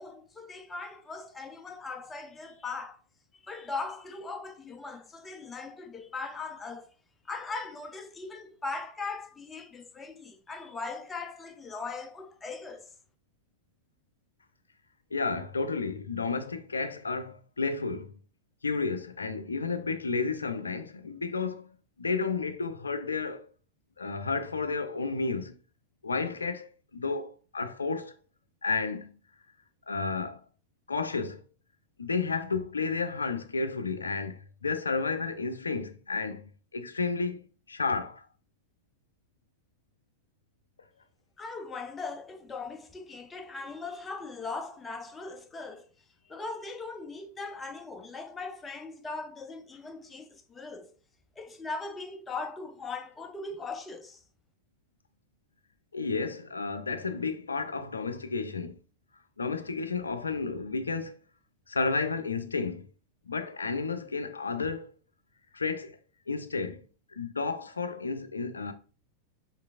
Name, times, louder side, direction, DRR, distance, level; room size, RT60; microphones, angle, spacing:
voice 1, 0.0-3.0 3.4-6.9 7.3-12.9 41.4-45.9 46.3-50.9 51.4-54.2, left 3 dB, 15° left, 0.5 m, -39 dB
voice 2, 15.1-18.1 18.6-21.6 22.0-23.5 24.0-25.5 26.0-26.7 26.9-28.1 28.6-29.1 29.9-30.4 30.9-31.4 32.0-36.4 36.7-37.4 37.7-38.2 55.9-58.7 59.4-61.1 61.7-62.9 63.3-64.9 65.5-66.0 66.3-66.9 67.2-68.7, left 4 dB, 75° left, 0.4 m, -31 dB
4.5 x 3.3 x 2.4 m
figure-of-eight pair, 90°, 0 cm